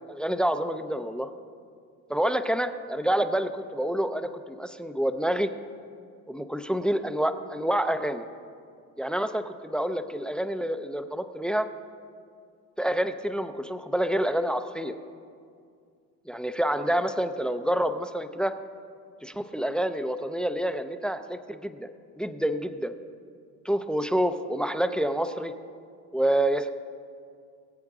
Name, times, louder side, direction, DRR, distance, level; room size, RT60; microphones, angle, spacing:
voice 1, 0.1-1.3 2.1-5.5 6.3-8.2 9.0-11.7 12.8-14.9 16.3-18.5 19.2-21.9 22.2-22.9 23.6-25.5 26.1-26.7, right 1 dB, ahead, 9 dB, 0.4 m, -28 dB
22.0 x 7.9 x 3.6 m, 2.3 s
cardioid pair, 105°, 41 cm